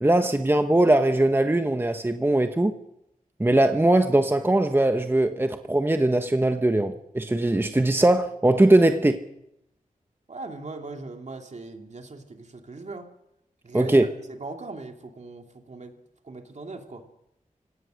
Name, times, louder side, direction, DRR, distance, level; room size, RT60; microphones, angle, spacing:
voice 1, 0.0-2.7 3.4-9.2 13.7-14.1, right 1 dB, 15° right, 1.1 m, -20 dB
voice 2, 10.3-13.1 13.6-15.9 16.2-17.1, right 3 dB, 55° right, 2.8 m, -39 dB
30.0 x 17.5 x 6.4 m
wide cardioid pair, 85°, 14 cm